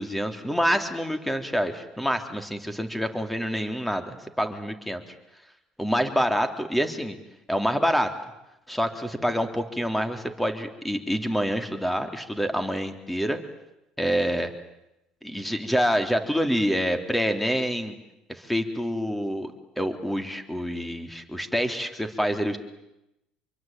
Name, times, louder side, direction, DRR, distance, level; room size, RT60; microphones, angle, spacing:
voice 1, 0.0-5.0 5.8-7.2 7.5-8.1 8.7-13.4 14.0-14.5 15.2-17.9 18.3-22.6, equal, 5° left, 7 dB, 3.3 m, -27 dB
26.0 x 23.5 x 9.1 m, 0.90 s
supercardioid pair, 95°, 2 cm